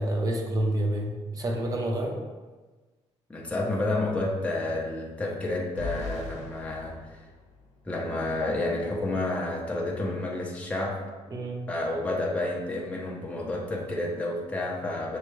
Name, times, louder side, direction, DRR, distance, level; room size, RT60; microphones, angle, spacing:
voice 1, 0.0-2.2 11.3-11.6, right 1 dB, 30° right, 1 dB, 0.7 m, -28 dB
voice 2, 3.3-7.2 7.8-11.0 11.7-15.2, left 2 dB, 10° left, -2 dB, 0.7 m, -30 dB
sound 1, 5.8-7.9, left 4 dB, 90° left, 0.7 m, -39 dB
6.4 x 2.3 x 3.1 m, 1.3 s
cardioid pair, 130°, 12 cm